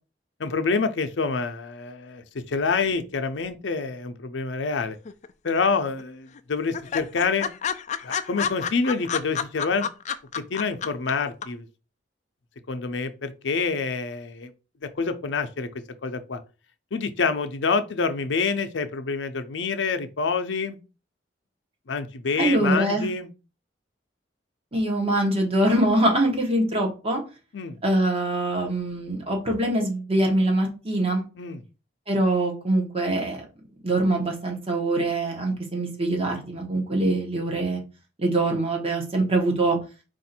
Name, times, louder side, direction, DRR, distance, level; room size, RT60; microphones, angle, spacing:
voice 1, 0.4-5.0 5.4-7.5 8.0-9.9 10.3-11.7 12.7-14.5 15.0-15.7 16.0-16.4 16.9-20.8 21.9-23.3 27.5-27.8 31.4-31.6, left 4 dB, 85° left, 0.6 m, -27 dB
sound 1, 5.1-5.7 6.0-6.1 6.4-6.5 6.7-11.1 11.4-11.5, left 7 dB, 40° left, 0.3 m, -29 dB
voice 2, 22.4-23.1 24.7-27.2 27.8-31.2 32.1-33.4 33.8-37.8 38.2-39.8, right 1 dB, 35° right, 1.3 m, -23 dB
4.7 x 2.5 x 4.3 m
head